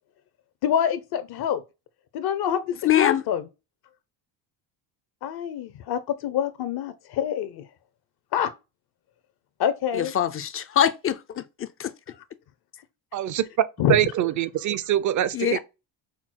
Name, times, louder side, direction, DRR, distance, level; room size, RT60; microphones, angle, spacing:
voice 1, 0.6-1.6 2.1-3.5 5.2-7.7 8.3-8.5 9.6-10.1 13.8-14.1, left 9 dB, 55° left, 0.7 m, -26 dB
voice 2, 2.8-3.2 9.9-11.9 15.3-15.6, left 10 dB, 30° left, 0.4 m, -24 dB
voice 3, 13.1-13.4 13.9-15.6, right 11 dB, 40° right, 0.6 m, -23 dB
5.9 x 2.0 x 4.5 m
cardioid pair, 95°, 45 cm